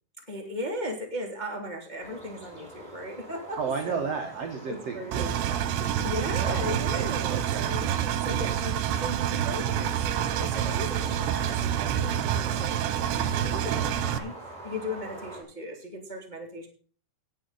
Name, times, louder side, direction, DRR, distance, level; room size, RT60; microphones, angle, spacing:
voice 1, 0.2-3.6 3.9-4.1 4.7-5.3 5.9-14.3 14.6-16.7, left 1 dB, 15° left, 1 dB, 1.6 m, -37 dB
sound 1, 2.0-15.4, right 1 dB, 10° right, 4.5 m, -46 dB
voice 2, 3.6-6.0 6.4-7.8 8.2-8.5, right 5 dB, 65° right, 3 dB, 1.6 m, -34 dB
Engine, 5.1-14.2, right 10 dB, 80° right, 3.0 m, -28 dB
18.5 x 8.2 x 4.1 m, 0.41 s
omnidirectional pair, 5.2 m